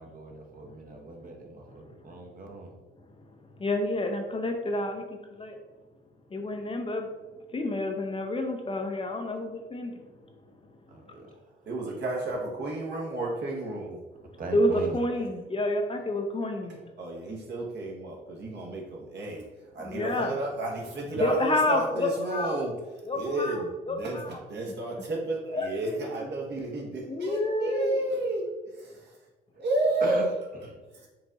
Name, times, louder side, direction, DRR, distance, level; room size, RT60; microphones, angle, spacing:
voice 1, 0.0-2.8 10.9-11.6 14.4-15.0 29.5-29.6 30.0-30.8, right 2 dB, 45° right, 2 dB, 0.9 m, -39 dB
voice 2, 0.6-1.0 1.7-2.2 2.9-5.6 6.3-11.2 14.2-16.8 19.8-20.3 21.2-22.6 23.0-24.3 24.7-24.8 25.5-26.3 27.1-28.0, left 1 dB, 25° left, 4 dB, 0.6 m, -30 dB
voice 3, 11.7-14.0 17.0-22.7 23.1-29.2 29.6-30.2 30.9-31.1, right 2 dB, 60° right, -1 dB, 1.1 m, -32 dB
4.6 x 2.5 x 4.0 m, 1.2 s
cardioid pair, 90°, 20 cm